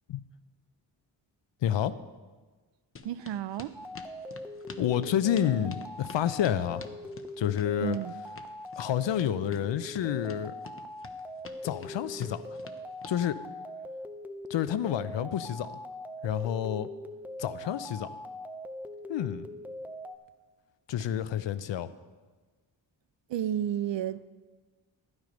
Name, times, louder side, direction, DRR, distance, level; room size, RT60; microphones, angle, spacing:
voice 1, 1.6-2.0 4.8-6.9 7.4-8.0 8.8-10.5 11.6-12.5 13.1-13.4 14.5-15.8 16.2-16.9 17.4-18.2 19.1-19.5 20.9-21.9, left 10 dB, 75° left, 0.7 m, -29 dB
sound 1, 3.0-13.2, left 5 dB, 30° left, 0.8 m, -48 dB
voice 2, 3.0-3.8 7.8-8.1 23.3-24.2, right 10 dB, 75° right, 0.6 m, -31 dB
sound 2, 3.7-20.2, left 1 dB, 5° right, 0.5 m, -42 dB
12.0 x 9.6 x 5.2 m
cardioid pair, 110°, 45 cm